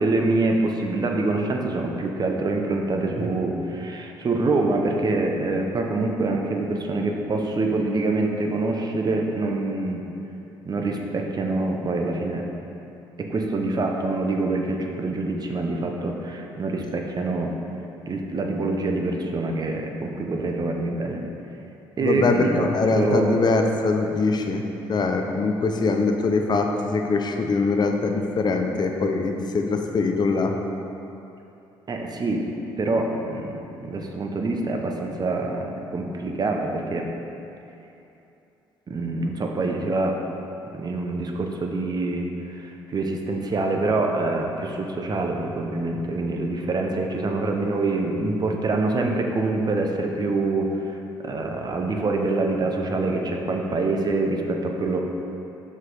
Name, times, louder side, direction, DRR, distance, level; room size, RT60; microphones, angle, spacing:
voice 1, 0.0-10.1 10.6-12.5 13.2-17.6 18.1-21.2 22.0-23.4 31.9-32.5 32.8-37.1 38.9-40.2 40.7-51.0 51.2-55.0, right 2 dB, 40° right, 2 dB, 0.9 m, -25 dB
voice 2, 22.0-24.6 24.9-30.5, left 3 dB, 40° left, 3 dB, 0.8 m, -23 dB
5.9 x 5.6 x 4.9 m, 2.8 s
supercardioid pair, 65°, 11 cm